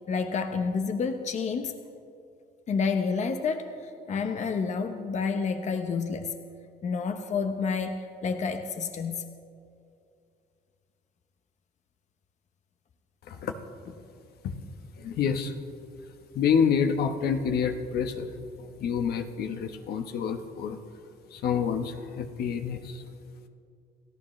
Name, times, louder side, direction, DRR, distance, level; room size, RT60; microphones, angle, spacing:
voice 1, 0.1-1.7 2.7-6.3 6.8-9.3, left 5 dB, 45° left, 7 dB, 1.0 m, -29 dB
voice 2, 15.0-15.5 16.3-18.3 18.8-20.8 21.3-23.0, left 7 dB, 70° left, 6 dB, 1.2 m, -28 dB
30.0 x 14.0 x 3.3 m, 2.4 s
cardioid pair, 110°, 17 cm